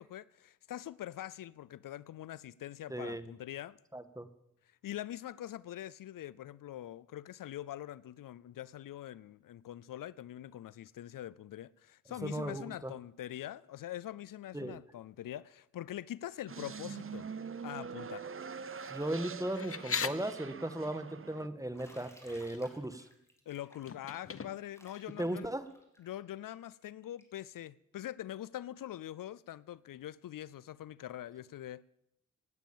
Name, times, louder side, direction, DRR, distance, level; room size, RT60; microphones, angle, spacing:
voice 1, 0.0-3.8 4.8-17.3 17.6-18.3 23.5-25.5 26.0-31.8, left 12 dB, 75° left, 0.5 m, -44 dB
voice 2, 2.9-3.3 3.9-4.3 12.2-12.9 14.5-14.8 18.9-23.1 25.2-25.6, right 1 dB, 10° right, 1.6 m, -37 dB
sound 1, 16.5-21.5, right 6 dB, 40° right, 0.8 m, -44 dB
sound 2, 19.5-20.1 21.9-22.0 22.3-22.8 23.9-24.8, left 6 dB, 40° left, 0.9 m, -37 dB
Bathtub (filling or washing), 21.7-27.4, equal, 10° left, 4.0 m, -60 dB
18.0 x 9.1 x 7.2 m
cardioid pair, 45°, 33 cm